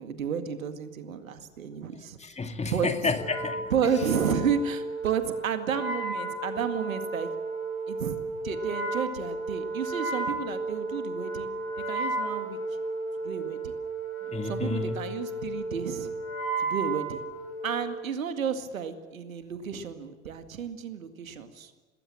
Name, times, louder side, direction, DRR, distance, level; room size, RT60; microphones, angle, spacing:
voice 1, 0.0-2.2 2.7-3.1 3.7-7.3 7.9-8.2 8.4-11.5 11.9-12.6 13.2-13.7 14.4-16.1 16.6-17.2 17.6-21.7, right 7 dB, 75° right, 9 dB, 2.2 m, -31 dB
voice 2, 2.2-3.7 14.3-15.0, left 4 dB, 15° left, 7 dB, 2.4 m, -30 dB
Wind instrument woodwind instrument, 3.2-17.9, right 3 dB, 90° left, 5.5 m, -33 dB
27.0 x 20.0 x 7.7 m, 1.3 s
figure-of-eight pair, 80°, 41 cm